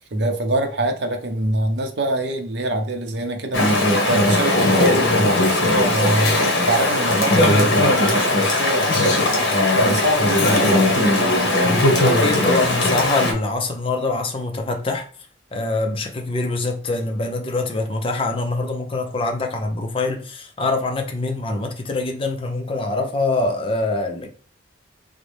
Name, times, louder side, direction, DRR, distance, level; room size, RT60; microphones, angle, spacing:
voice 1, 0.1-11.8, right 1 dB, 60° right, 0.6 m, -24 dB
Chatter / Stream, 3.5-13.3, left 1 dB, 60° left, 0.9 m, -18 dB
voice 2, 12.0-15.1 15.5-24.3, left 2 dB, 30° left, 0.5 m, -24 dB
3.9 x 2.1 x 3.2 m
head